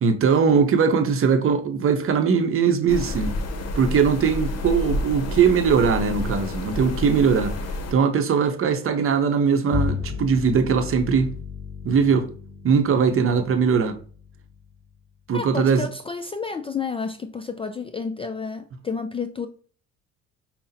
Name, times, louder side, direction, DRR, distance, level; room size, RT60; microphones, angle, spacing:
voice 1, 0.0-3.4 3.8-7.6 7.9-11.3 11.8-12.3 12.6-14.0 15.3-15.9, right 6 dB, 45° right, 0.7 m, -20 dB
sound 1, 2.9-7.9, left 2 dB, 55° left, 0.8 m, -29 dB
Bowed string instrument, 9.7-15.4, left 6 dB, 35° left, 1.0 m, -34 dB
voice 2, 15.3-19.5, left 4 dB, 20° left, 0.3 m, -30 dB
5.5 x 2.1 x 2.7 m
supercardioid pair, 75°, 32 cm